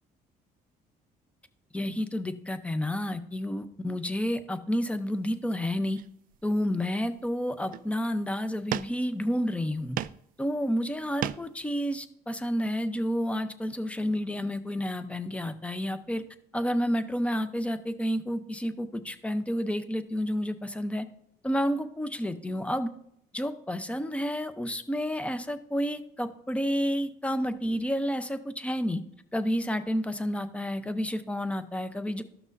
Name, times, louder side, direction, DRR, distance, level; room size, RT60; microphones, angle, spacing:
voice 1, 1.7-6.0 6.4-10.0 10.4-16.2 16.5-21.1 21.4-22.9 23.3-29.0 29.3-32.2, equal, 5° left, 10 dB, 0.7 m, -30 dB
sound 1, 5.3-5.4 6.0-6.7 7.2-7.3 7.6-8.1 8.7-9.3 9.7-10.3 10.6-11.6, right 11 dB, 55° right, 0.4 m, -36 dB
13.0 x 6.1 x 2.7 m, 0.72 s
cardioid pair, 110°, 17 cm